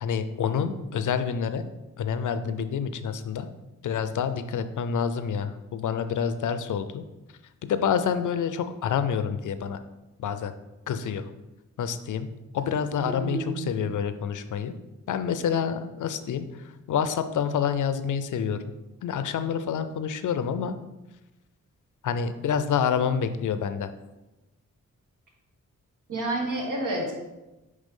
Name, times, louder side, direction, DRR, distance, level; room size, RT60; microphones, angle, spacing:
voice 1, 0.0-1.7 2.0-3.5 3.8-7.0 7.6-9.8 10.2-10.5 10.9-11.2 11.8-12.3 12.5-14.7 15.1-16.5 16.9-18.6 19.0-20.8 22.0-23.9, left 7 dB, 75° left, 10 dB, 0.5 m, -27 dB
voice 2, 13.0-13.7 26.1-27.1, right 2 dB, 85° right, -1 dB, 1.5 m, -29 dB
9.0 x 3.2 x 3.7 m, 1.0 s
cardioid pair, 90°, 31 cm